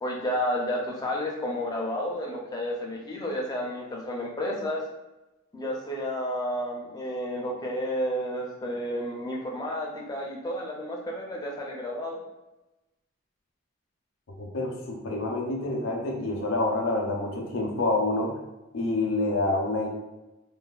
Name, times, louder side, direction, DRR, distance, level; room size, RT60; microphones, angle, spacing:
voice 1, 0.0-4.8 5.5-12.2, equal, 20° left, -2 dB, 0.5 m, -31 dB
voice 2, 14.4-18.4 18.7-19.9, left 2 dB, 65° left, 1 dB, 0.6 m, -27 dB
3.2 x 2.2 x 2.3 m, 1.0 s
head